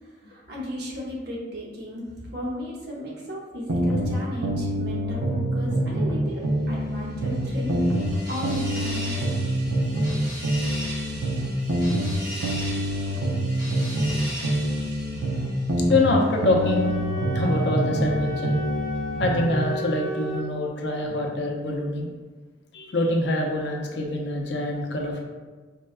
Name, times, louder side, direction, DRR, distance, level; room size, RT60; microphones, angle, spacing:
voice 1, 0.3-2.1 2.3-7.8 8.3-9.1, equal, 60° right, -4 dB, 0.8 m, -34 dB
sound 1, 3.7-6.2 6.4-10.2 10.4-14.2 14.4-18.2 18.4-19.5, right 1 dB, 90° right, 0.5 m, -26 dB
sound 2, 7.0-16.1, right 1 dB, 25° right, 1.1 m, -38 dB
voice 2, 15.9-16.9 17.3-18.6 19.2-22.1 22.7-25.2, left 2 dB, 65° left, 0 dB, 0.5 m, -25 dB
Wind instrument woodwind instrument, 16.6-20.5, equal, ahead, 0.5 m, -33 dB
4.4 x 2.1 x 2.4 m, 1.4 s
head